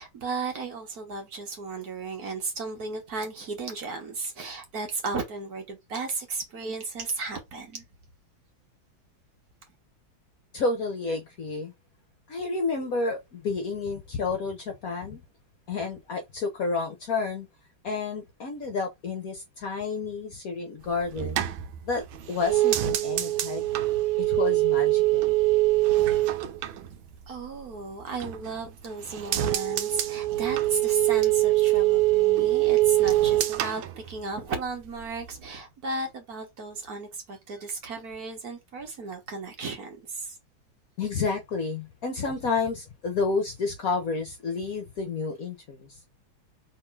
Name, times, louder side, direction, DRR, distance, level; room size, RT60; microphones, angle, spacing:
voice 1, 0.0-7.8 27.3-40.4, right 3 dB, 50° right, 1.5 m, -34 dB
voice 2, 10.5-11.7 12.3-15.2 15.7-17.5 17.8-21.4 21.8-23.8 24.2-25.3 41.0-46.0, left 4 dB, 60° left, 1.0 m, -30 dB
sound 1, 20.8-27.6 28.0-28.7 29.0-34.7 35.0-35.5, right 16 dB, 75° right, 1.4 m, -24 dB
3.6 x 3.1 x 4.4 m
omnidirectional pair, 2.2 m